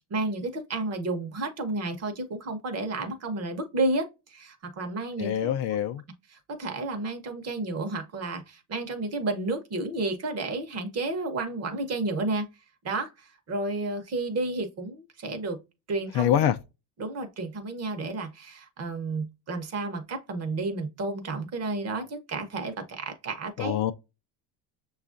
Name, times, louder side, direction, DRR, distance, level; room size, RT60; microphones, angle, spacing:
voice 1, 0.1-5.5 6.5-12.5 12.8-15.6 15.9-16.3 17.0-23.8, right 2 dB, 30° right, 0.8 m, -31 dB
voice 2, 5.2-6.0 16.1-16.6 23.6-23.9, left 10 dB, 55° left, 0.5 m, -25 dB
6.5 x 2.4 x 2.5 m
cardioid pair, 160°, 48 cm